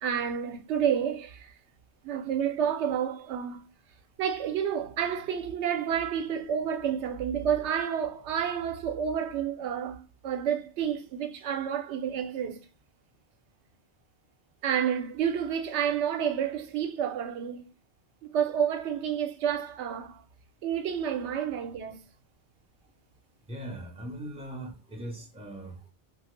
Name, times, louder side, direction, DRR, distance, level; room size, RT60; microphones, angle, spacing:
voice 1, 0.0-1.5 2.0-3.7 4.2-12.6 14.6-17.7 18.2-20.2 20.6-22.0, right 8 dB, 85° right, 0.9 m, -30 dB
voice 2, 23.5-25.9, right 1 dB, 5° right, 0.6 m, -40 dB
2.8 x 2.3 x 3.1 m
omnidirectional pair, 1.1 m